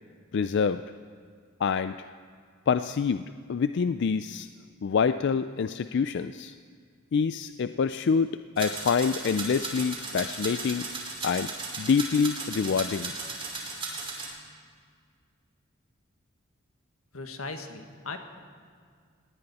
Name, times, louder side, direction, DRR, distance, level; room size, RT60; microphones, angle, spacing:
voice 1, 0.3-0.8 1.6-2.1 2.7-4.5 4.8-6.5 7.1-10.9 11.2-11.5 11.8-13.1, left 6 dB, 55° left, 11 dB, 0.4 m, -26 dB
sound 1, 8.6-14.3, right 3 dB, 25° right, 2.9 m, -36 dB
voice 2, 17.1-18.2, left 3 dB, 85° left, 5 dB, 1.6 m, -38 dB
19.5 x 17.5 x 4.2 m, 2.1 s
head